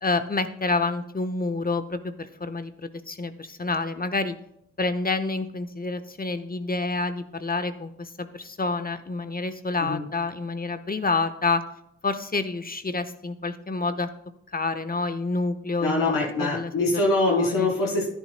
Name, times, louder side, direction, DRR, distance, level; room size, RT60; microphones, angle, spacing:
voice 1, 0.0-4.4 4.8-11.6 12.0-14.1 14.5-16.7 17.3-17.7, left 3 dB, 25° left, 10 dB, 1.1 m, -28 dB
voice 2, 15.8-18.1, left 2 dB, 80° left, -3 dB, 3.8 m, -24 dB
13.5 x 10.5 x 2.2 m, 0.76 s
supercardioid pair, 45°, 33 cm